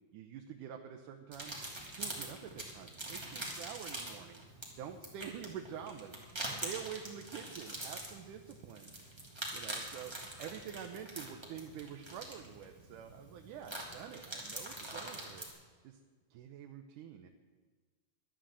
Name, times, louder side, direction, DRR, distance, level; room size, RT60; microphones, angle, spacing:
voice 1, 0.1-1.5 1.8-4.4 4.8-6.2 6.5-8.9 9.5-15.5 15.8-16.0 16.3-17.3, right 8 dB, 90° right, 4 dB, 2.4 m, -47 dB
sound 1, 1.3-15.5, right 1 dB, 10° right, 2.2 m, -44 dB
11.5 x 11.5 x 7.6 m, 1.5 s
omnidirectional pair, 3.5 m